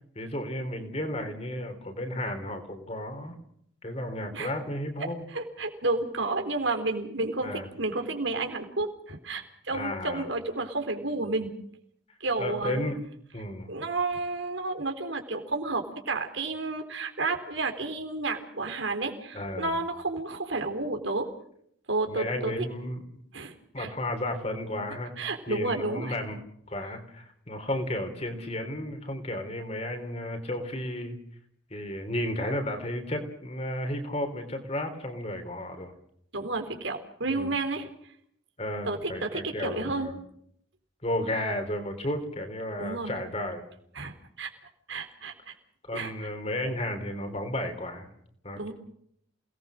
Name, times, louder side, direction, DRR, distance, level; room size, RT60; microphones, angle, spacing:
voice 1, 0.2-3.3 3.8-5.2 7.4-7.7 9.7-10.2 12.4-13.0 13.3-13.7 19.3-19.7 22.1-23.0 23.7-26.4 26.7-31.2 31.7-35.9 37.4-37.5 38.6-40.1 41.0-43.6 45.9-48.1 48.4-48.7, left 1 dB, 30° left, 6 dB, 3.6 m, -33 dB
voice 2, 5.3-11.5 12.2-12.8 13.7-21.3 21.9-22.5 23.3-23.9 25.2-26.2 36.3-37.9 38.8-40.1 42.8-43.1 44.0-44.5 44.9-45.5 45.9-46.1 48.6-48.7, right 3 dB, 70° right, 5 dB, 3.8 m, -31 dB
28.5 x 19.0 x 6.4 m, 0.69 s
head